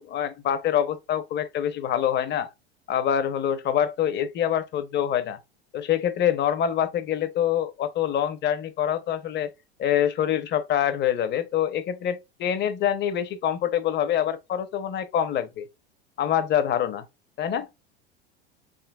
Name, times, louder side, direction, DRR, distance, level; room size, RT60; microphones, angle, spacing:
voice 1, 0.0-2.5 2.9-5.4 5.7-9.5 9.8-15.7 16.2-17.0 17.4-17.7, left 10 dB, 35° left, 0.8 m, -25 dB
3.9 x 3.8 x 2.3 m
hypercardioid pair, 95°, 32 cm